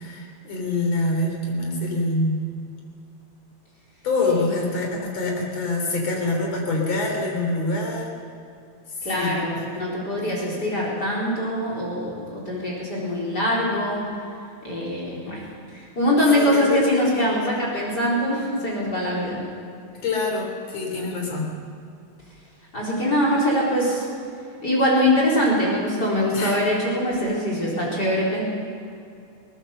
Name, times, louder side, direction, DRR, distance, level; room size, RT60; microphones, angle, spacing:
voice 1, 0.0-2.4 4.0-8.1 9.1-9.8 10.2-10.5 16.3-16.8 20.0-21.6 26.3-26.6, left 2 dB, 60° left, 1 dB, 4.8 m, -25 dB
voice 2, 9.0-14.1 14.6-15.4 15.7-19.4 22.7-24.0 24.6-28.4, equal, 30° left, -4 dB, 4.9 m, -23 dB
21.5 x 18.5 x 6.8 m, 2.5 s
omnidirectional pair, 3.4 m